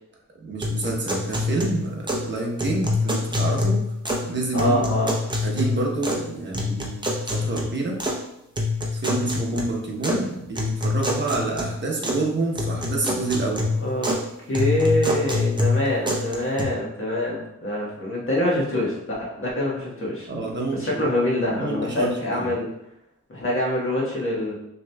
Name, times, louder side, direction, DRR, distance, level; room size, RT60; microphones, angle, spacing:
voice 1, 0.4-3.9 4.3-4.9 5.4-8.0 8.9-13.7 20.3-21.0 21.6-22.5, right 3 dB, 35° right, -1 dB, 0.9 m, -28 dB
sound 1, 0.6-2.3 2.6-4.3 4.6-6.3 6.5-8.2 8.6-10.2 10.6-12.2 12.6-14.2 14.5-16.6, left 2 dB, 15° right, 0.7 m, -26 dB
voice 2, 4.5-5.1 13.8-14.1 14.5-20.3 20.7-22.7 23.3-24.5, left 1 dB, 40° left, -4 dB, 1.4 m, -25 dB
6.1 x 3.0 x 2.3 m, 0.82 s
wide cardioid pair, 115°, 31 cm